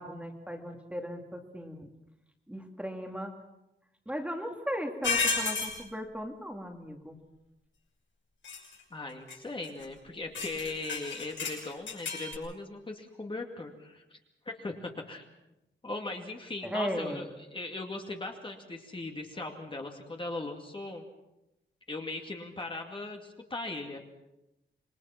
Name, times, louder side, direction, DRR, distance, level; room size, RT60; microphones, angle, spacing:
voice 1, 0.0-1.9 2.5-3.3 4.1-7.2 16.6-17.3, equal, 5° right, 2 dB, 2.4 m, -37 dB
sound 1, 5.0-5.8 8.4-8.7 9.3-9.4 9.6-9.8 10.3-12.3, left 4 dB, 80° left, 6.3 m, -32 dB
voice 2, 8.9-14.2 14.5-15.2 15.8-17.3 17.5-21.1 21.9-24.0, left 2 dB, 25° left, 2 dB, 2.3 m, -39 dB
26.5 x 22.5 x 5.9 m, 0.93 s
wide cardioid pair, 150°, 19 cm